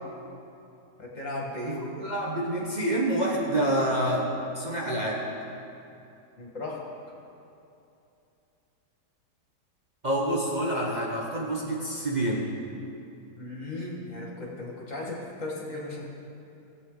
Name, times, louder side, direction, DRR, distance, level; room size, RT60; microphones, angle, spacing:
voice 1, 1.0-1.9 6.4-6.9 13.4-16.0, left 2 dB, 50° left, -3 dB, 2.1 m, -36 dB
voice 2, 1.7-4.3 4.5-5.2 10.0-12.5, right 1 dB, 30° right, -4 dB, 1.2 m, -27 dB
19.0 x 8.2 x 3.9 m, 2.8 s
omnidirectional pair, 1.7 m